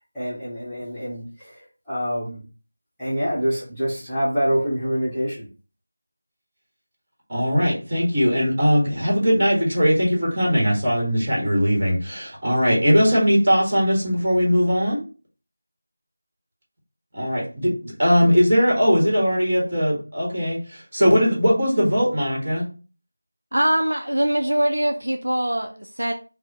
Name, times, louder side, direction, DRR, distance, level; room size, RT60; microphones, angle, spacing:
voice 1, 0.1-2.4 3.0-5.5, equal, 5° left, -15 dB, 1.0 m, -26 dB
voice 2, 7.3-15.0 17.1-22.6, equal, 35° right, -3 dB, 1.5 m, -20 dB
voice 3, 23.5-26.1, right 1 dB, 65° right, 4 dB, 0.4 m, -22 dB
4.5 x 2.0 x 2.8 m, 0.36 s
figure-of-eight pair, 170°, 0 cm